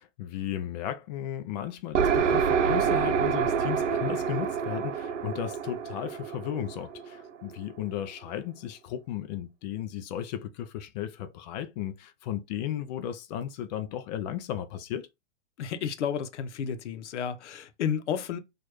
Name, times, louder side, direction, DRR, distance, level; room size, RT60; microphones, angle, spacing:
voice 1, 0.0-15.1, left 10 dB, 35° left, 0.5 m, -35 dB
sound 1, 1.9-7.5, right 7 dB, 80° right, 0.7 m, -27 dB
voice 2, 15.6-18.4, left 8 dB, 70° left, 0.9 m, -31 dB
4.4 x 2.5 x 3.1 m
hypercardioid pair, 130°, 36 cm